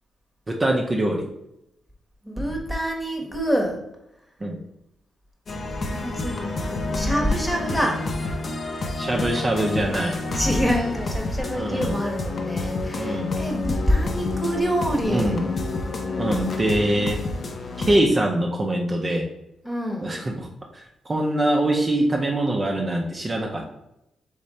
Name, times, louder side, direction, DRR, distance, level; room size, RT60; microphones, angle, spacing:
voice 1, 0.5-1.3 4.4-4.6 9.0-10.2 11.6-11.9 12.9-13.3 15.1-15.4 16.2-17.2 17.8-19.2 20.0-20.5 21.1-23.7, right 1 dB, 30° right, 0 dB, 0.7 m, -23 dB
voice 2, 2.2-3.8 5.8-8.0 10.3-15.4 19.6-20.3, equal, 10° left, 1 dB, 1.2 m, -26 dB
sound 1, 5.5-18.0, left 3 dB, 50° left, 0.7 m, -29 dB
3.6 x 3.2 x 4.2 m, 0.84 s
cardioid pair, 75°, 0 cm